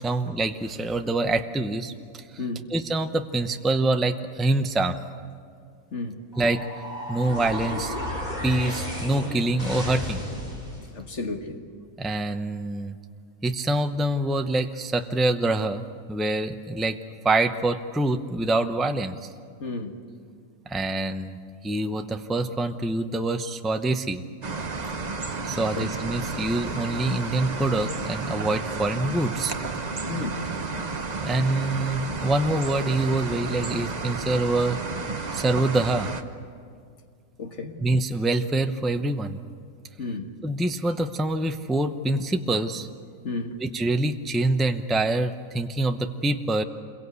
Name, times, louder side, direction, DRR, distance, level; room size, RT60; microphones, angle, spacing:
voice 1, 0.0-2.4 2.7-5.0 6.4-6.7 7.1-7.9 8.4-10.2 12.0-13.0 13.4-17.0 17.2-19.3 20.7-24.2 24.7-24.8 25.4-29.6 31.2-34.8 35.3-36.1 37.8-39.4 40.4-42.9 43.6-46.6, right 2 dB, ahead, 0.6 m, -25 dB
voice 2, 2.4-2.7 5.9-6.3 10.9-11.6 19.6-20.0 25.8-25.9 30.1-30.4 37.4-37.9 40.0-40.3 43.2-43.6, left 3 dB, 55° left, 1.9 m, -33 dB
sound 1, 6.3-10.9, left 1 dB, 30° left, 6.5 m, -33 dB
sound 2, 24.4-36.2, right 3 dB, 35° right, 1.1 m, -32 dB
27.5 x 22.5 x 8.2 m
omnidirectional pair, 1.4 m